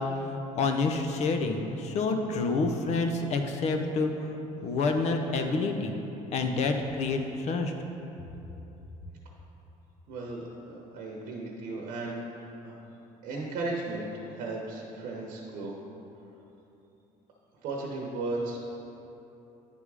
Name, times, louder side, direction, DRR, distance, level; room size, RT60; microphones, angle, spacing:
voice 1, 0.0-6.0 6.3-7.7, left 3 dB, 55° left, 5 dB, 0.7 m, -28 dB
voice 2, 10.1-12.7 13.2-15.7 17.6-18.8, right 2 dB, 70° right, -2 dB, 1.0 m, -36 dB
9.6 x 3.5 x 4.8 m, 3.0 s
cardioid pair, 125°, 14 cm